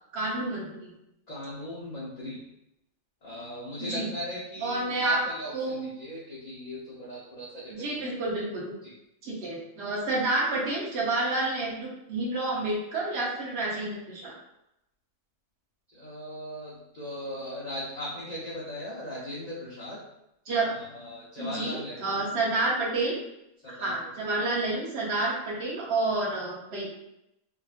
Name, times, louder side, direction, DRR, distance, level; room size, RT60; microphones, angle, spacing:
voice 1, 0.1-0.9 3.8-4.1 4.6-5.2 5.5-5.9 7.7-8.7 9.2-14.3 20.5-20.7 21.4-23.2 23.7-26.9, right 2 dB, 50° right, -5 dB, 1.2 m, -29 dB
voice 2, 1.3-2.4 3.2-8.1 8.8-8.9 15.9-20.0 20.6-22.3 23.6-23.9 24.2-24.3, left 1 dB, 40° left, -7 dB, 0.7 m, -38 dB
4.6 x 2.5 x 2.4 m, 0.85 s
omnidirectional pair, 1.5 m